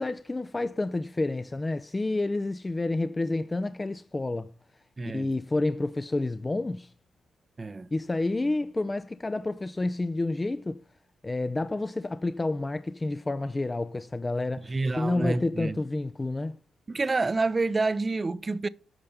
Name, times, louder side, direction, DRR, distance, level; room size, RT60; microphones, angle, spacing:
voice 1, 0.0-4.5 5.0-6.9 7.9-10.8 11.2-16.6, left 2 dB, 20° left, 0.5 m, -29 dB
voice 2, 5.0-5.3 7.6-7.9 14.6-15.8 16.9-18.7, right 3 dB, 30° right, 0.5 m, -28 dB
8.8 x 5.6 x 6.8 m
cardioid pair, 85°, 0 cm